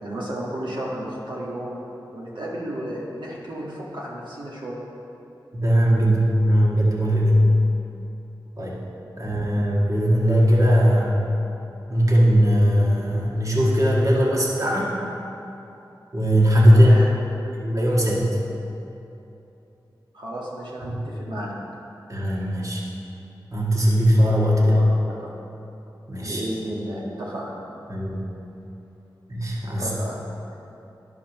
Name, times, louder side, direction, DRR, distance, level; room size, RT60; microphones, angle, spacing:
voice 1, 0.0-1.8 2.1-4.8 16.7-17.1 20.1-21.5 24.6-25.3 26.2-27.5 29.8-30.2, right 1 dB, 70° right, -6 dB, 1.8 m, -32 dB
voice 2, 5.5-7.4 8.6-8.8 9.2-11.2 11.9-14.9 16.1-16.9 17.5-18.4 20.8-21.0 22.1-22.8 23.5-24.8 26.1-26.4 27.9-28.3 29.3-29.9, equal, 40° right, -5 dB, 1.7 m, -19 dB
11.0 x 4.8 x 6.0 m, 2.9 s
cardioid pair, 45°, 8 cm